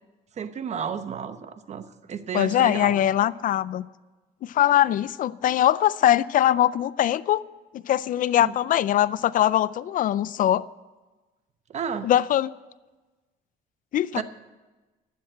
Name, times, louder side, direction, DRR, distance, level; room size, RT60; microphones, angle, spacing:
voice 1, 0.4-3.0 8.4-8.5 11.7-12.1 14.1-14.2, right 7 dB, 40° right, 11 dB, 1.0 m, -32 dB
voice 2, 2.3-3.8 4.4-7.4 7.7-10.6 12.0-12.5 13.9-14.2, left 12 dB, 55° left, 19 dB, 0.4 m, -22 dB
12.0 x 8.7 x 8.8 m, 1.2 s
cardioid pair, 110°, 17 cm